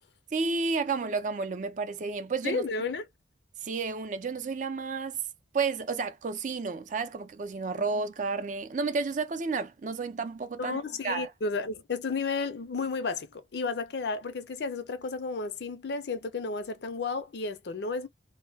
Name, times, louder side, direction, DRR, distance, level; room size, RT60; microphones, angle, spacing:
voice 1, 0.3-2.6 3.6-5.2 5.5-11.3, right 4 dB, 45° right, 0.4 m, -31 dB
voice 2, 2.4-3.0 10.6-18.1, left 4 dB, 65° left, 0.5 m, -32 dB
2.2 x 2.0 x 3.3 m
head